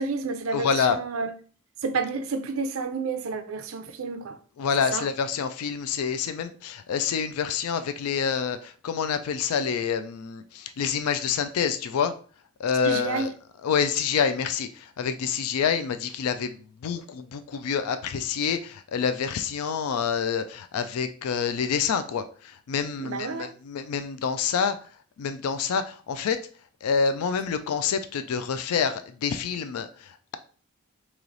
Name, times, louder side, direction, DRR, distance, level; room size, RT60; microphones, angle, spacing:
voice 1, 0.0-1.3 1.8-4.4 4.9-5.0 12.8-13.3 23.0-23.5, right 4 dB, 70° right, 0.5 m, -30 dB
voice 2, 0.5-1.0 4.6-12.1 12.6-13.3 13.6-24.9 25.2-26.4 26.8-30.4, left 6 dB, 90° left, 0.4 m, -27 dB
3.1 x 2.9 x 3.8 m
head